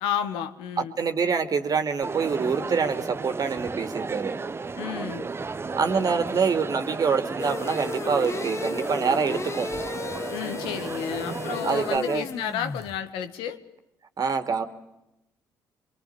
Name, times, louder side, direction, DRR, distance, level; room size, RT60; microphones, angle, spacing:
voice 1, 0.0-0.9 4.8-5.3 10.3-13.6, left 9 dB, 80° left, 8 dB, 1.7 m, -31 dB
voice 2, 0.8-4.4 5.8-9.7 11.6-12.3 14.2-14.6, right 5 dB, 45° right, 8 dB, 2.7 m, -25 dB
Crowd, 2.0-12.0, right 4 dB, 30° right, 0.9 m, -33 dB
sound 1, 7.4-13.0, left 4 dB, 30° left, 1.3 m, -35 dB
24.5 x 23.0 x 8.7 m, 0.90 s
supercardioid pair, 60°, 9 cm